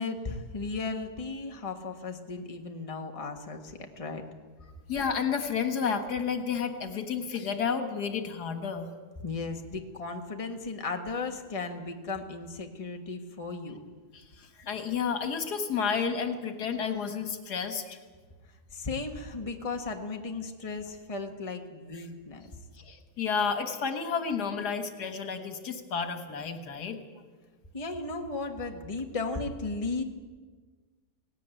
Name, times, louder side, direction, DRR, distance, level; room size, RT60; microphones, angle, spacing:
voice 1, 0.0-4.2 9.2-13.8 18.7-22.5 27.7-30.0, left 3 dB, 20° left, 4 dB, 1.5 m, -35 dB
voice 2, 4.9-8.9 14.1-14.2 14.6-18.0 22.9-27.0, left 6 dB, 80° left, 7 dB, 2.1 m, -31 dB
18.0 x 17.0 x 9.1 m, 1.4 s
omnidirectional pair, 1.7 m